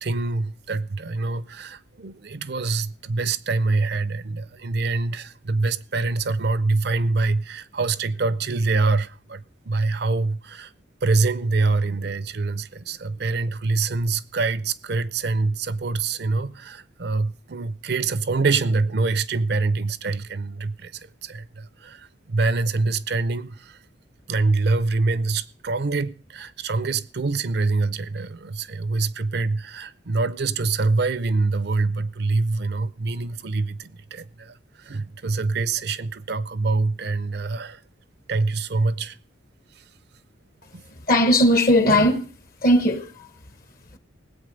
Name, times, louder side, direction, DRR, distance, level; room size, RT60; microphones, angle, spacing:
voice 1, 0.0-10.7 11.0-23.8 24.3-37.8 38.3-39.2 39.8-39.9 40.7-40.8, right 3 dB, 55° right, 0.6 m, -25 dB
voice 2, 41.1-42.3 42.6-43.3, left 1 dB, 50° left, 1.0 m, -18 dB
18.5 x 8.3 x 5.2 m
head